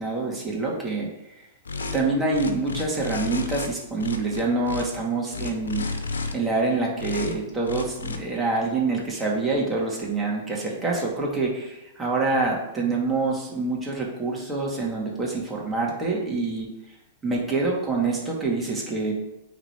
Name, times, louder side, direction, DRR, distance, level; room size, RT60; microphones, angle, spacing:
voice 1, 0.0-1.5 1.9-5.9 6.3-16.7 17.2-19.1, right 3 dB, 15° right, -3 dB, 2.6 m, -26 dB
sound 1, 1.7-2.0 2.3-3.7 4.0-4.8 5.3-6.3 7.0-7.3 7.6-8.2, left 4 dB, 90° left, 1.0 m, -31 dB
8.9 x 4.2 x 4.9 m, 0.91 s
hypercardioid pair, 115°, 0 cm